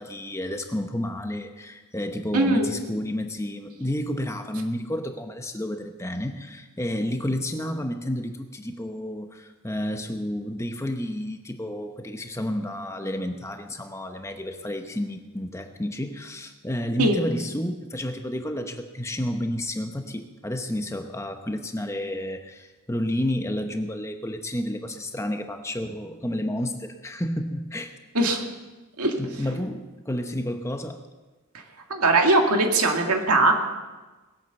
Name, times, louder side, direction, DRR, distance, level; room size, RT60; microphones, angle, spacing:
voice 1, 0.0-27.9 29.2-31.0, left 1 dB, 15° left, 6 dB, 0.9 m, -30 dB
voice 2, 2.3-2.7 17.0-17.2 28.1-28.4 29.0-29.1 31.9-33.5, right 2 dB, 90° right, 3 dB, 2.2 m, -20 dB
20.0 x 8.6 x 6.9 m, 1.2 s
head